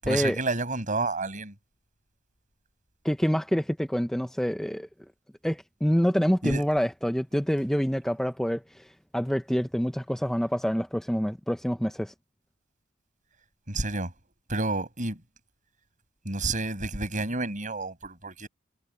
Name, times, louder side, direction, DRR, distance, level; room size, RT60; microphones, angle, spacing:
voice 1, 0.0-1.6 6.4-6.7 13.7-14.1 14.5-15.2 16.2-18.5, right 2 dB, 40° right, 7.3 m, -30 dB
voice 2, 3.0-4.9 5.4-8.9 9.1-12.1, equal, ahead, 0.6 m, -26 dB
head